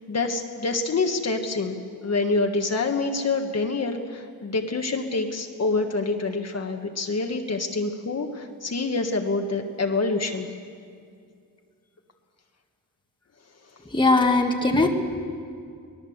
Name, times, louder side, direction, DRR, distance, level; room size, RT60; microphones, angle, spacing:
voice 1, 0.1-10.5, left 3 dB, 45° left, 4 dB, 1.5 m, -26 dB
voice 2, 13.9-14.9, left 2 dB, 15° left, 3 dB, 1.6 m, -19 dB
23.5 x 19.5 x 8.0 m, 2.2 s
wide cardioid pair, 160°, 36 cm